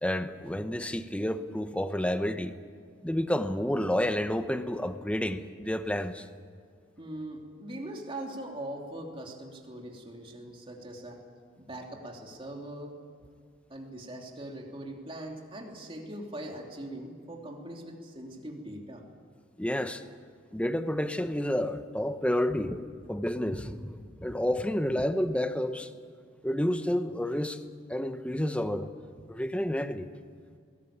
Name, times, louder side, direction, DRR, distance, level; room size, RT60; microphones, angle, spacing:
voice 1, 0.0-2.6 3.0-6.3 19.6-20.0 20.5-22.8 23.1-25.9 26.4-27.6 27.9-28.9 29.3-30.1, left 1 dB, 5° left, 9 dB, 0.9 m, -30 dB
voice 2, 7.0-11.2 11.6-13.0 13.7-19.0, right 1 dB, 25° right, 1 dB, 3.0 m, -41 dB
21.5 x 18.0 x 8.8 m, 2.2 s
head